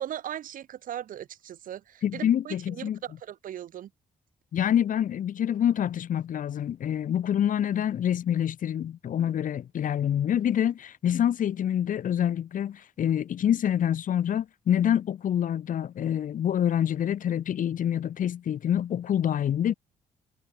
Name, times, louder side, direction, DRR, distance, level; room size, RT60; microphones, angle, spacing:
voice 1, 0.0-3.9, right 11 dB, 70° right, 2.5 m, -38 dB
voice 2, 2.0-3.0 4.5-19.7, left 10 dB, 65° left, 2.3 m, -26 dB
supercardioid pair, 60°, 15 cm